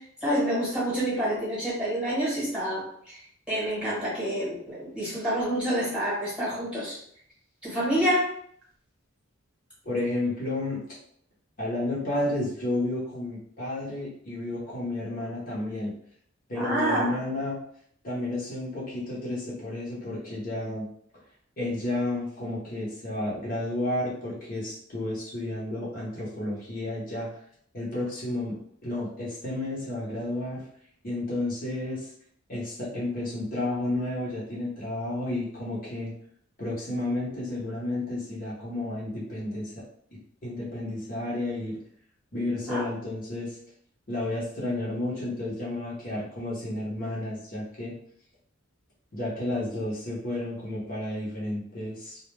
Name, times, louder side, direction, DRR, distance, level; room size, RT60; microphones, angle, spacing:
voice 1, 0.2-3.2 3.5-7.0 7.6-8.3 16.6-17.1 42.7-42.8, equal, 5° right, -8 dB, 1.1 m, -27 dB
voice 2, 9.8-10.8 11.6-15.9 16.5-17.6 18.0-20.9 21.6-27.3 27.7-30.6 31.0-32.1 32.5-36.1 36.6-39.7 40.4-41.8 42.3-43.6 44.1-47.9 49.1-52.2, left 1 dB, 45° left, -6 dB, 0.8 m, -31 dB
2.3 x 2.1 x 3.1 m, 0.64 s
head